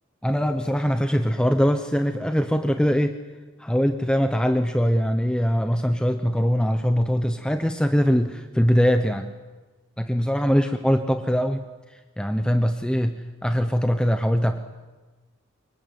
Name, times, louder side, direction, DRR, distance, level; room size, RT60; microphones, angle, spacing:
voice 1, 0.2-3.2 3.6-9.3 10.0-11.6 12.2-14.6, equal, 5° left, 7 dB, 0.9 m, -22 dB
25.0 x 23.0 x 9.5 m, 1.3 s
head